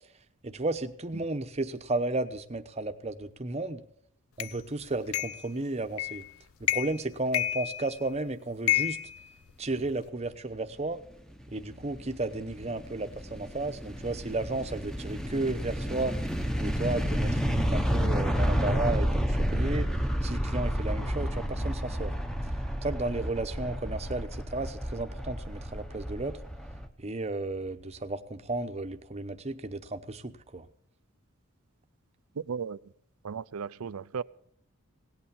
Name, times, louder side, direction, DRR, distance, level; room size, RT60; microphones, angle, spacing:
voice 1, 0.4-3.8 4.4-6.2 6.6-9.0 9.6-11.0 11.5-16.1 16.6-19.9 20.2-22.1 22.8-26.4 27.0-30.7, right 2 dB, 30° right, 0.8 m, -33 dB
sound 1, 4.4-4.5 5.1-5.5 6.0-6.3 6.6-7.0 7.3-8.1 8.7-9.9, left 13 dB, 85° left, 0.6 m, -30 dB
sound 2, 11.4-26.9, equal, 5° left, 0.9 m, -30 dB
voice 2, 32.5-32.8 33.2-34.2, right 6 dB, 90° right, 0.5 m, -35 dB
17.5 x 8.5 x 7.1 m
head